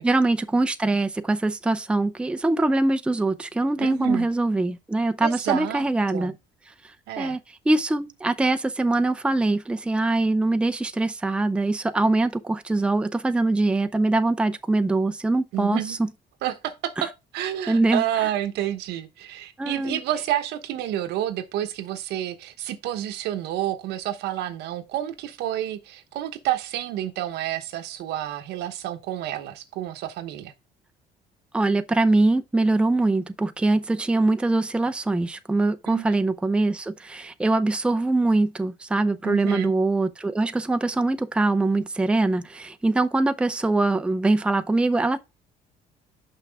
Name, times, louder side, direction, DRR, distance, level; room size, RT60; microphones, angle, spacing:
voice 1, 0.0-6.3 7.2-7.4 7.7-16.0 17.7-18.0 19.6-20.0 31.5-45.2, right 2 dB, 5° right, 0.5 m, -23 dB
voice 2, 3.8-4.3 5.2-5.8 6.1-6.3 7.1-7.4 15.5-16.0 16.4-30.5 35.9-36.1 39.2-39.7, right 12 dB, 85° right, 1.0 m, -29 dB
5.9 x 5.8 x 3.5 m
cardioid pair, 110°, 17 cm